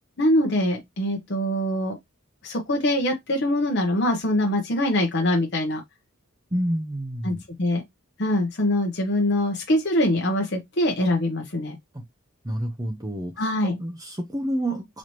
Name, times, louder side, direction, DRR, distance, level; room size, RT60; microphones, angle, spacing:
voice 1, 0.2-2.0 2.4-5.8 7.2-7.8 8.2-11.8 13.4-13.8, left 1 dB, 50° left, 0.8 m, -23 dB
voice 2, 6.5-7.4 11.9-12.0 12.4-15.0, right 1 dB, 15° right, 0.6 m, -29 dB
4.1 x 2.8 x 3.0 m
head